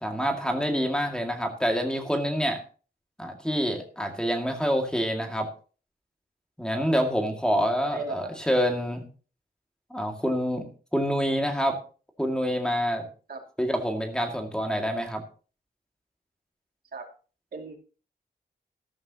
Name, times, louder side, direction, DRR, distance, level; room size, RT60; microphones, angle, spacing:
voice 1, 0.0-2.6 3.2-5.5 6.6-9.0 9.9-10.6 10.9-11.8 12.2-13.1 13.6-15.2, equal, 5° left, 3 dB, 2.2 m, -27 dB
voice 2, 7.9-8.3 13.3-13.4 16.9-17.0 17.5-17.8, right 3 dB, 65° right, 3 dB, 2.6 m, -36 dB
13.5 x 13.0 x 2.9 m, 0.37 s
wide cardioid pair, 170°, 17 cm